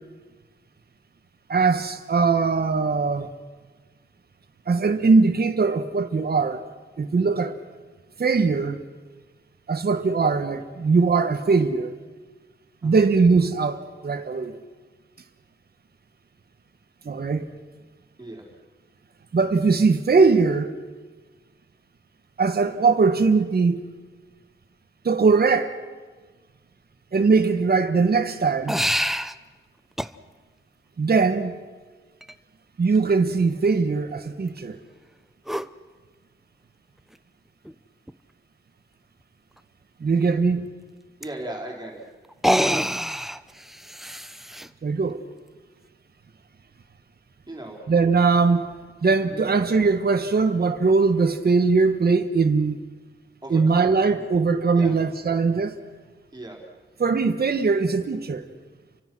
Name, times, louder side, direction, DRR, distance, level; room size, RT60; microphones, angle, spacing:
voice 1, 1.5-3.3 4.7-6.6 7.0-7.6 8.2-8.8 9.7-12.0 12.8-14.6 17.0-17.5 19.3-20.7 22.4-23.8 25.0-25.7 27.1-28.8 31.0-31.6 32.8-34.8 40.0-40.7 44.8-45.2 47.9-48.7 49.0-52.8 53.5-55.8 57.0-58.5, right 4 dB, 50° right, 1.5 m, -21 dB
sound 1, 28.7-29.3 30.0-30.1 32.2-32.3 35.5-35.7 37.1-37.2 37.7-37.8 38.1-38.2 41.2-41.3 42.3-44.7, equal, ahead, 0.7 m, -25 dB
voice 2, 40.1-40.4 41.2-42.0 47.5-47.8 49.2-49.5 53.4-54.2 54.8-54.9 56.3-56.6, right 1 dB, 20° right, 4.1 m, -37 dB
29.5 x 24.5 x 6.2 m
wide cardioid pair, 145°, 20 cm